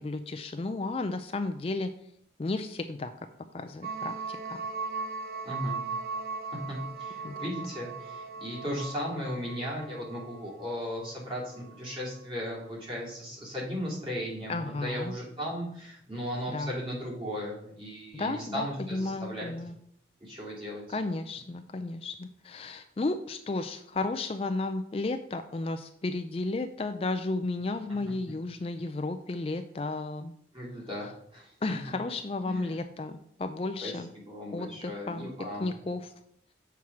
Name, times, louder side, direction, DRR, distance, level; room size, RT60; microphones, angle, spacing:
voice 1, 0.0-1.9 2.4-3.1 3.5-4.6 7.2-7.5 14.5-15.1 16.5-16.7 18.1-19.8 20.9-30.3 31.0-31.1 31.6-34.1 34.5-35.3 35.6-36.1, left 2 dB, 30° left, 8 dB, 0.4 m, -33 dB
sound 1, 3.8-12.0, right 4 dB, 55° right, 0.9 m, -38 dB
voice 2, 5.4-5.8 6.5-19.5 20.2-21.0 30.5-31.5 32.4-32.7 33.8-33.9 34.2-35.7, equal, 30° right, -4 dB, 3.1 m, -36 dB
7.1 x 4.7 x 5.9 m, 0.70 s
head